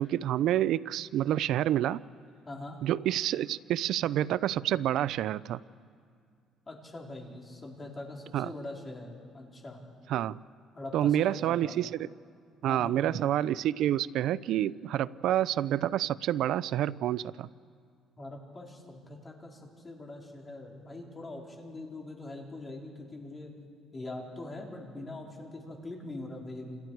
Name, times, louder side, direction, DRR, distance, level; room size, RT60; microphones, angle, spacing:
voice 1, 0.0-2.0 2.8-5.6 8.3-8.5 10.1-10.4 10.9-12.1 12.6-17.5, right 12 dB, 70° right, 18 dB, 0.5 m, -28 dB
voice 2, 2.4-2.8 6.7-9.8 10.7-11.8 12.6-13.3 18.2-23.5 23.9-26.8, left 2 dB, 25° left, -1 dB, 3.9 m, -42 dB
29.0 x 28.0 x 4.7 m, 2.2 s
cardioid pair, 120°, 0 cm